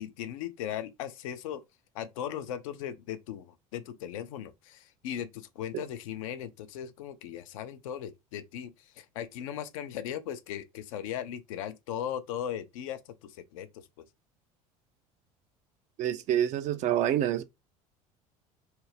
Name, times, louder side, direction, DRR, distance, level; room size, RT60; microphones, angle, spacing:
voice 1, 0.0-1.6 1.9-14.0, left 10 dB, 60° left, 0.4 m, -38 dB
voice 2, 16.0-17.4, right 11 dB, 40° right, 0.4 m, -27 dB
2.4 x 2.0 x 3.2 m
figure-of-eight pair, 65°, 19 cm